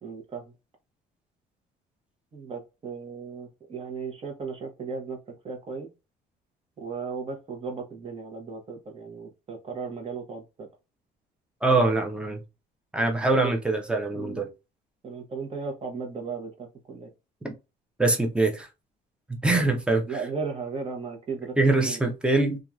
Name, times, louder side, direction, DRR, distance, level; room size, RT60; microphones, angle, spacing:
voice 1, 0.0-0.4 2.3-5.2 5.4-5.9 6.8-10.7 13.3-13.5 14.1-14.4 15.0-17.1 20.0-21.6 21.8-22.0, right 5 dB, 35° right, 1.0 m, -36 dB
voice 2, 11.6-12.4 12.9-14.5 17.4-17.5 18.0-18.7 19.3-20.2 21.6-22.6, right 2 dB, 5° right, 0.7 m, -23 dB
2.8 x 2.4 x 2.3 m
cardioid pair, 110°, 17 cm